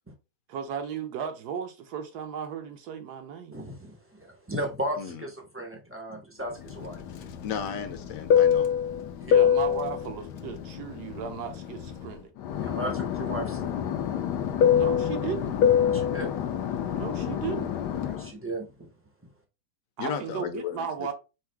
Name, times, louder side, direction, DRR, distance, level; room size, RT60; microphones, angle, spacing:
voice 1, 0.5-3.6 9.3-12.3 14.7-15.6 16.9-17.7 20.0-21.1, right 7 dB, 70° right, 1.1 m, -35 dB
voice 2, 3.5-7.0 9.2-9.3 12.6-13.8 14.5-14.7 15.9-16.4 18.1-18.9, right 1 dB, 20° right, 0.3 m, -36 dB
Fixed-wing aircraft airplane, 6.7-12.1 12.4-18.3, left 8 dB, 80° left, 1.3 m, -25 dB
voice 3, 7.4-8.7 20.0-21.1, left 7 dB, 60° left, 1.0 m, -34 dB
4.7 x 2.0 x 4.4 m
omnidirectional pair, 1.9 m